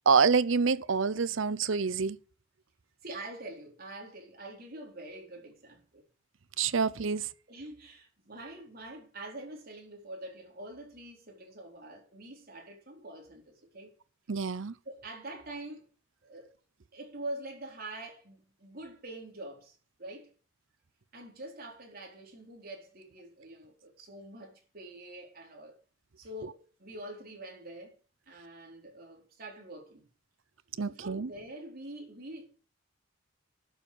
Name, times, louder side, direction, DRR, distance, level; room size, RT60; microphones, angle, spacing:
voice 1, 0.1-2.2 6.6-7.3 14.3-14.7 30.8-31.3, right 5 dB, 70° right, 0.7 m, -27 dB
voice 2, 3.0-6.0 7.5-13.9 14.8-15.9 16.2-16.5 16.9-20.3 21.1-25.8 26.2-28.0 28.3-30.1 30.9-32.5, right 1 dB, 50° right, 4.2 m, -45 dB
12.0 x 7.1 x 7.0 m
head